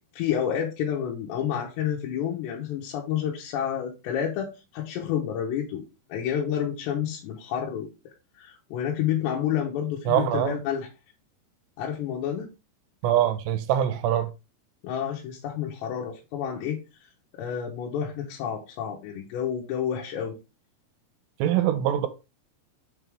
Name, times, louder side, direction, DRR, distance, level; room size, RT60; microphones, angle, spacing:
voice 1, 0.1-5.8 6.1-7.9 8.3-10.9 11.8-12.5 14.8-20.4, left 9 dB, 85° left, 3.1 m, -29 dB
voice 2, 10.1-10.6 13.0-14.3 21.4-22.1, right 11 dB, 90° right, 2.9 m, -23 dB
6.7 x 3.5 x 4.6 m
omnidirectional pair, 4.9 m